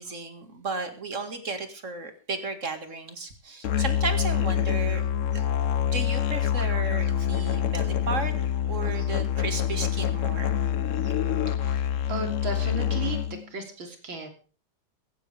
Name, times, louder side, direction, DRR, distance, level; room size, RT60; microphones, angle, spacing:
voice 1, 0.0-5.0 5.3-5.4 5.9-8.3 8.7-10.5 11.0-11.1, right 4 dB, 40° right, 2.2 m, -34 dB
Musical instrument, 3.6-13.4, left 9 dB, 55° left, 0.9 m, -26 dB
voice 2, 11.6-13.2 13.5-14.3, right 2 dB, 70° right, 3.7 m, -35 dB
16.0 x 15.5 x 3.4 m
omnidirectional pair, 2.2 m